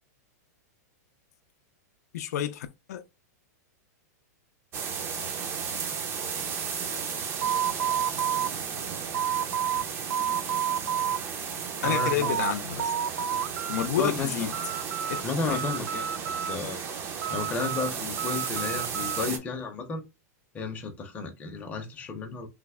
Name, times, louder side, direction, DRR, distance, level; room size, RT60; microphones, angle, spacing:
voice 1, 2.1-3.0 11.8-12.9 13.7-14.5 15.1-15.6, left 10 dB, 70° left, 0.5 m, -30 dB
sound 1, 4.7-19.4, right 6 dB, 25° right, 0.6 m, -34 dB
sound 2, 7.4-9.9 10.1-11.2 11.6-12.5 12.8-13.9 14.2-15.2 15.5-16.8 17.2-19.3, right 9 dB, 90° right, 0.4 m, -30 dB
voice 2, 11.8-12.3 14.0-14.7 15.2-16.1 16.5-16.8 17.3-20.0 20.5-22.5, left 4 dB, 15° left, 0.7 m, -32 dB
3.2 x 2.0 x 3.5 m
supercardioid pair, 150°, 9 cm